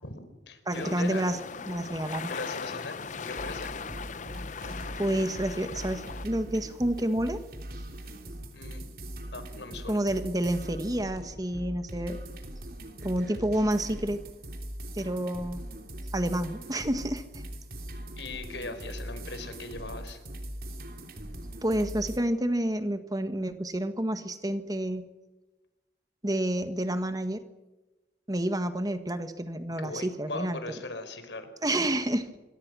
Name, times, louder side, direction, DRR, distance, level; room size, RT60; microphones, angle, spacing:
voice 1, 0.0-1.3 2.3-3.7 8.5-8.8 9.3-10.0 18.2-20.2 29.8-31.5, left 2 dB, 90° left, 9 dB, 4.5 m, -39 dB
sound 1, 0.7-6.3, left 5 dB, 45° left, 0.7 m, -39 dB
voice 2, 0.7-1.4 1.7-2.3 5.0-7.4 9.9-12.2 13.0-14.2 14.9-15.6 16.1-17.2 21.6-25.1 26.2-27.4 28.3-30.6 31.6-32.3, right 1 dB, 20° right, 9 dB, 1.6 m, -29 dB
sound 2, 3.3-22.2, right 1 dB, 55° right, 3.3 m, -41 dB
26.0 x 23.0 x 6.3 m, 1.1 s
head